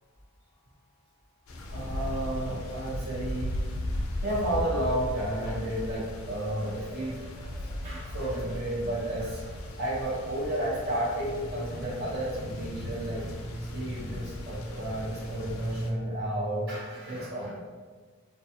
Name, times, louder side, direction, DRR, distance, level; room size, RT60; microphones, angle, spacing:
sound 1, 1.5-15.9, left 1 dB, 80° left, 0.4 m, -37 dB
voice 1, 1.7-3.6 4.2-13.3 13.7-17.6, right 1 dB, 55° right, -6 dB, 0.7 m, -32 dB
sound 2, 10.8-16.8, right 1 dB, 20° right, 0.3 m, -40 dB
2.6 x 2.3 x 2.6 m, 1.5 s
head